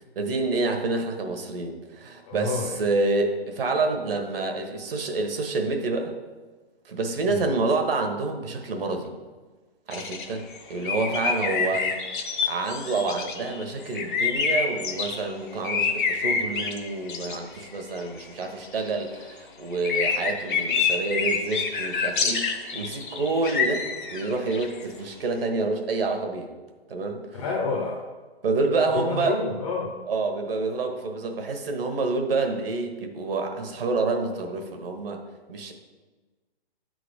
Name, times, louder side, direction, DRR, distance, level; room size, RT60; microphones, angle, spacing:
voice 1, 0.1-6.2 6.8-9.1 9.9-11.9 12.5-26.5 26.9-27.4 28.4-29.4 30.1-35.2 35.5-35.7, right 3 dB, 65° right, 4 dB, 1.3 m, -28 dB
voice 2, 2.2-2.8 7.3-7.5 11.8-11.9 27.3-28.1 28.9-30.0, left 4 dB, 30° left, 1 dB, 0.7 m, -29 dB
sound 1, 9.9-15.2 15.6-17.7 18.0-19.2 19.7-25.0, left 5 dB, 50° left, 1.0 m, -27 dB
9.0 x 3.9 x 5.0 m, 1.3 s
hypercardioid pair, 155°, 31 cm